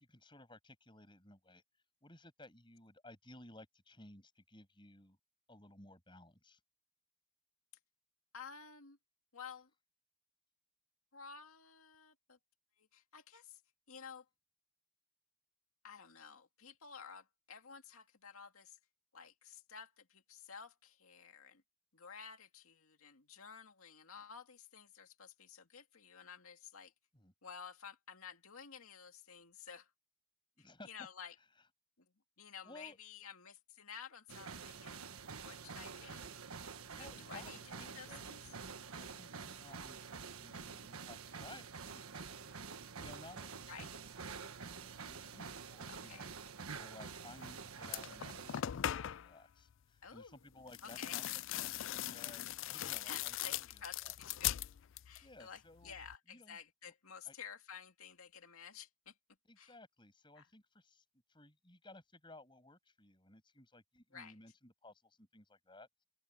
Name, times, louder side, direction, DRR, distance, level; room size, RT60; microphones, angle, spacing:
voice 1, 0.0-1.6 2.0-5.2 5.5-6.6 27.1-27.3 30.6-31.1 32.6-33.0 36.9-38.3 39.0-46.3 46.7-48.7 49.1-54.1 55.2-55.9 56.3-56.6 57.3-57.4 59.4-61.0 61.3-66.0, left 2 dB, 20° left, 7.9 m, -58 dB
voice 2, 8.3-9.0 9.3-9.7 11.1-12.4 12.8-13.6 13.9-14.3 15.8-18.8 19.1-21.6 21.9-26.9 27.4-29.9 30.6-31.4 32.0-35.1 35.4-36.4 36.9-38.4 43.7-43.9 45.9-46.2 50.0-50.4 50.8-51.4 53.0-54.6 55.0-59.1 59.6-59.7 60.4-60.5 64.1-64.4, left 6 dB, 80° left, 2.3 m, -52 dB
sound 1, 34.3-48.6, right 5 dB, 85° right, 1.4 m, -48 dB
sound 2, 47.4-47.5 47.8-49.3 50.7-55.3 55.6-56.2, left 12 dB, 60° left, 0.3 m, -40 dB
open air
head